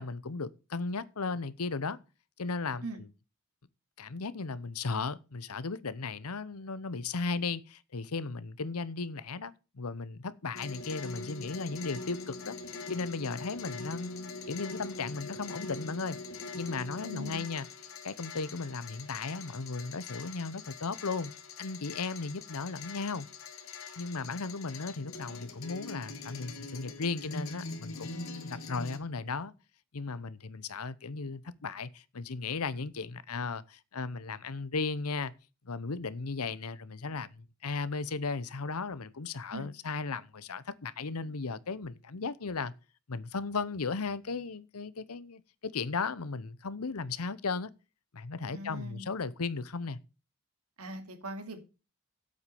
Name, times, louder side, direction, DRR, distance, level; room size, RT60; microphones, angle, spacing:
voice 1, 0.0-2.0 2.4-3.1 4.0-12.6 12.9-16.2 16.6-17.7 18.0-21.3 21.6-23.3 24.0-29.5 29.9-35.3 35.6-42.7 43.1-47.7 48.1-50.0, left 4 dB, 85° left, 0.8 m, -36 dB
sound 1, 10.5-29.0, left 3 dB, 65° left, 1.7 m, -43 dB
voice 2, 17.0-17.6 39.5-39.7 48.5-49.1 50.8-51.6, right 1 dB, 90° right, 2.5 m, -41 dB
8.3 x 8.1 x 7.0 m
head